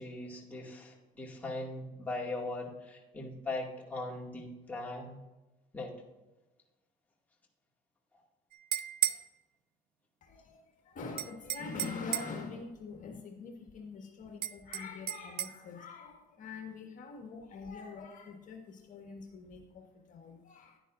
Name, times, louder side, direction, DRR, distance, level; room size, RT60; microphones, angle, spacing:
voice 1, 0.0-5.2 5.7-5.9, left 2 dB, 10° left, -3 dB, 2.1 m, -40 dB
sound 1, 8.5-9.3 11.2-12.4 14.4-15.6, right 12 dB, 60° right, 0.5 m, -34 dB
voice 2, 10.2-20.8, left 4 dB, 50° left, 2 dB, 1.6 m, -44 dB
10.5 x 9.9 x 2.5 m, 1.1 s
cardioid pair, 110°, 17 cm